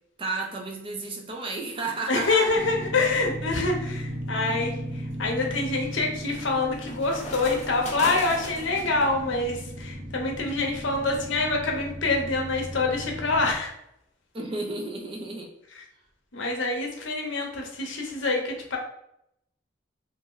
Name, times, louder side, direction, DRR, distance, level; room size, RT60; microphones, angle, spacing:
voice 1, 0.2-2.6 14.3-15.5, right 3 dB, 30° right, 1 dB, 0.4 m, -32 dB
voice 2, 2.1-13.7 15.7-15.8 16.3-18.8, left 3 dB, 80° left, 1 dB, 0.7 m, -26 dB
sound 1, 2.5-13.6, equal, 65° right, 0.9 m, -37 dB
sound 2, 3.5-3.9 4.4-9.1, left 2 dB, 35° left, 0.4 m, -38 dB
2.5 x 2.1 x 3.7 m, 0.79 s
head